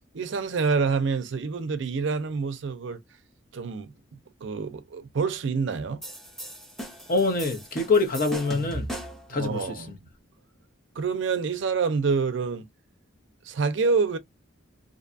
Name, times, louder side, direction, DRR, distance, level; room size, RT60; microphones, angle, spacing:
voice 1, 0.1-3.0 3.5-3.9 4.4-6.0 9.3-10.0 11.0-12.7 13.4-14.2, right 5 dB, 65° right, 0.4 m, -27 dB
sound 1, 6.0-9.3, equal, ahead, 0.7 m, -37 dB
voice 2, 7.1-8.9 9.3-9.8, left 3 dB, 45° left, 0.8 m, -25 dB
2.6 x 2.2 x 2.5 m
head